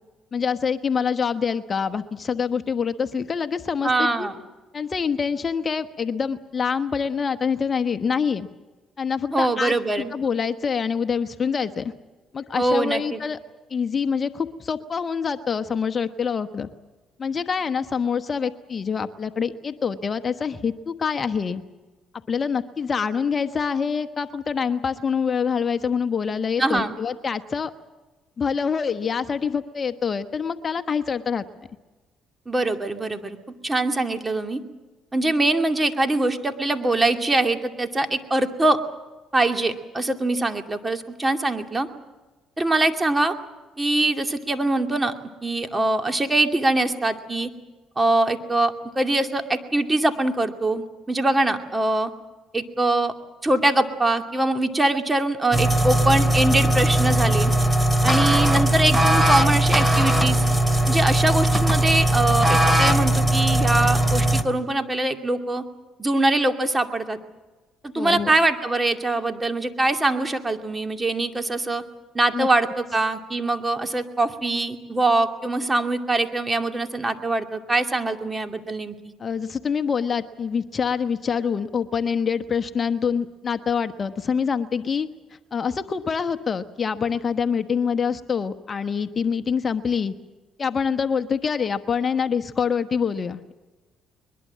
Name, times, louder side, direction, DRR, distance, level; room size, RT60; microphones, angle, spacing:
voice 1, 0.3-4.3 4.7-8.5 9.0-9.8 10.1-11.9 12.3-13.4 13.7-16.7 17.2-21.6 22.3-27.7 28.4-31.4 67.9-68.3 72.3-72.5 79.2-85.1 85.5-90.1 90.6-93.5, left 6 dB, 40° left, 9 dB, 1.1 m, -25 dB
voice 2, 3.8-4.3 9.3-10.1 12.6-13.2 26.6-26.9 32.5-33.4 33.6-34.6 35.1-38.8 39.3-41.9 42.6-43.3 43.8-45.1 45.4-47.5 48.0-52.1 52.5-53.1 53.4-57.5 58.0-60.5 60.9-65.6 66.0-67.2 67.8-71.8 72.1-79.0, right 2 dB, 20° right, 6 dB, 2.4 m, -23 dB
sound 1, 55.5-64.4, right 1 dB, ahead, 2.3 m, -19 dB
22.0 x 21.5 x 7.5 m, 1.2 s
supercardioid pair, 70°, 0 cm